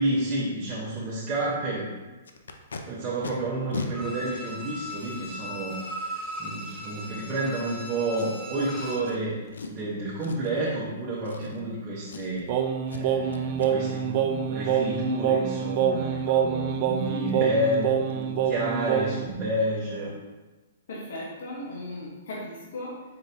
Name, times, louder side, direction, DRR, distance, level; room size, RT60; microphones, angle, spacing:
voice 1, 0.0-1.9 2.9-9.4 9.7-12.5 12.9-20.1, right 1 dB, 25° right, -6 dB, 0.8 m, -30 dB
Packing tape duct tape, 2.2-2.8 3.2-3.3 3.7-3.9 4.7-4.8 8.1-8.6 9.0-9.2 9.5-9.8 10.2-10.6 11.2-11.8 12.0-12.5 12.9-13.0 13.3-13.7 16.7-16.8 17.2-17.3 17.7-17.8 18.1-18.4 18.6-18.7, left 4 dB, 90° left, 0.4 m, -37 dB
Bowed string instrument, 3.9-9.1 9.5-9.6, equal, 10° left, 0.8 m, -38 dB
Singing, 12.5-19.3, right 8 dB, 40° right, 0.3 m, -26 dB
voice 2, 17.2-17.6 20.9-23.0, left 1 dB, 70° left, -3 dB, 0.9 m, -37 dB
4.5 x 3.9 x 2.7 m, 1.2 s
hypercardioid pair, 145°, 0 cm